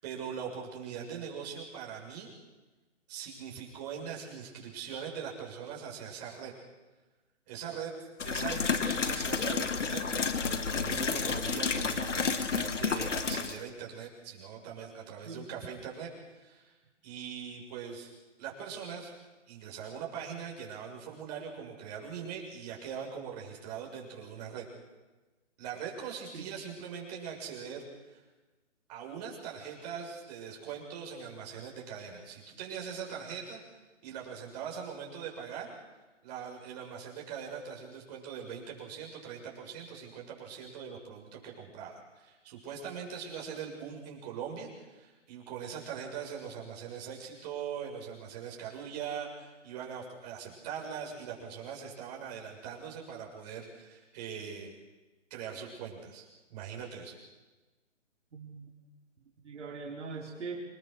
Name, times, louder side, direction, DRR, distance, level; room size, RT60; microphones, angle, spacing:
voice 1, 0.0-2.3 3.1-6.5 7.5-7.9 8.2-16.1 16.3-16.7 17.0-18.1 18.4-19.1 19.5-24.7 25.6-28.2 28.9-33.6 34.0-35.7 36.2-54.7 55.3-57.1, right 7 dB, 35° right, -1 dB, 6.6 m, -41 dB
sound 1, 8.2-13.6, left 5 dB, 75° left, 2.2 m, -31 dB
voice 2, 58.3-58.7 59.4-60.6, right 4 dB, 70° right, -1 dB, 4.7 m, -41 dB
26.5 x 20.5 x 6.5 m, 1.2 s
hypercardioid pair, 145°, 37 cm